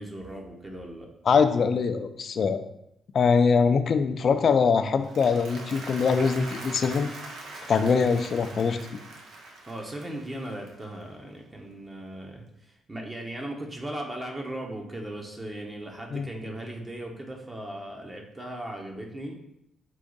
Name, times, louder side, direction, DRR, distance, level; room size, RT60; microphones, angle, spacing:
voice 1, 0.0-1.1 9.6-19.3, right 1 dB, 25° right, 1 dB, 1.0 m, -38 dB
voice 2, 1.3-2.6 3.1-7.1 7.7-9.0 16.1-16.3, left 5 dB, 55° left, 9 dB, 0.4 m, -23 dB
Applause, 4.9-11.2, right 2 dB, 75° right, 0.7 m, -43 dB
4.6 x 2.5 x 3.9 m, 0.78 s
supercardioid pair, 60°, 0 cm